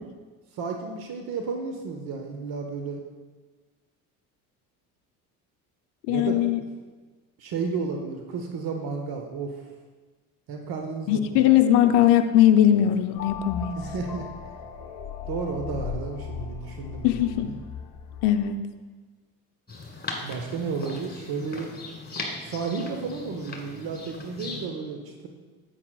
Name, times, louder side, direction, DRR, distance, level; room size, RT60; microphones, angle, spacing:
voice 1, 0.5-3.0 6.1-6.4 7.4-9.6 10.5-11.5 13.7-14.3 15.3-17.4 20.2-21.7 22.4-25.3, right 5 dB, 55° right, 3 dB, 1.0 m, -32 dB
voice 2, 6.1-6.6 11.1-13.7 17.0-17.5 18.2-18.6, left 11 dB, 65° left, 7 dB, 0.6 m, -20 dB
sound 1, 13.1-18.6, left 7 dB, 40° left, 0.9 m, -37 dB
sound 2, 19.7-24.7, left 3 dB, 20° left, 1.9 m, -38 dB
9.7 x 8.1 x 2.3 m, 1.4 s
hypercardioid pair, 65°, 45 cm